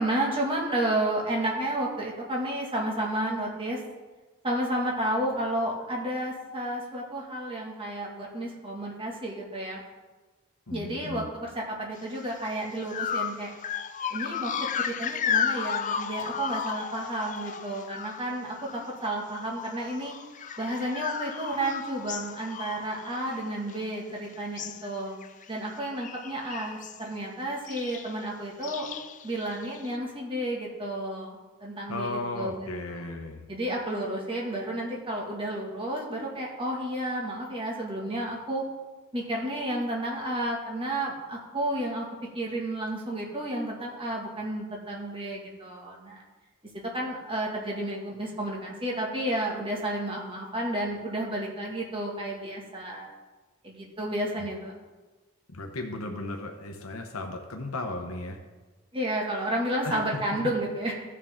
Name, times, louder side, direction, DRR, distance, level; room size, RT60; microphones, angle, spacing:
voice 1, 0.0-3.8 4.4-9.8 10.7-13.5 14.1-20.1 20.6-25.2 25.5-28.9 29.2-32.5 32.9-33.1 33.5-38.6 39.1-42.1 42.3-46.2 46.9-53.1 53.6-54.7 58.9-61.0, right 1 dB, 25° right, -2 dB, 2.0 m, -31 dB
voice 2, 10.7-11.3 31.9-33.4 55.5-58.4 59.8-60.0, left 2 dB, 90° left, 3 dB, 1.0 m, -35 dB
sound 1, 12.2-12.4 12.9-19.0 19.3-24.1 24.4-24.9 25.2-25.5 25.8-27.0 27.7-28.2 28.6-29.9, left 7 dB, 35° left, 0.4 m, -34 dB
15.0 x 6.6 x 3.7 m, 1.3 s
head